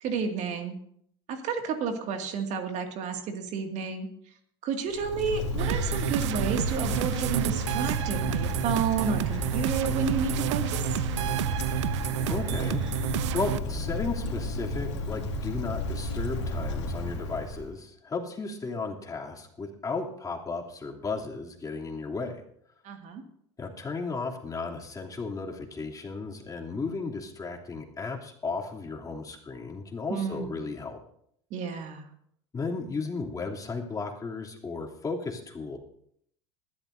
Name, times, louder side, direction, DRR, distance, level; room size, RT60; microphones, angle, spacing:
voice 1, 0.0-0.8 1.3-4.1 4.6-10.9 22.8-23.2 30.1-30.6 31.5-32.1, right 6 dB, 55° right, 5 dB, 2.3 m, -31 dB
Wind, 4.9-17.7, left 1 dB, 90° left, 2.7 m, -32 dB
sound 1, 5.6-13.6, right 14 dB, 80° right, 0.5 m, -30 dB
voice 2, 12.3-12.8 13.3-22.4 23.6-31.0 32.5-35.8, left 4 dB, 25° left, -1 dB, 2.9 m, -34 dB
20.5 x 12.0 x 2.7 m, 0.69 s
hypercardioid pair, 80°, 15 cm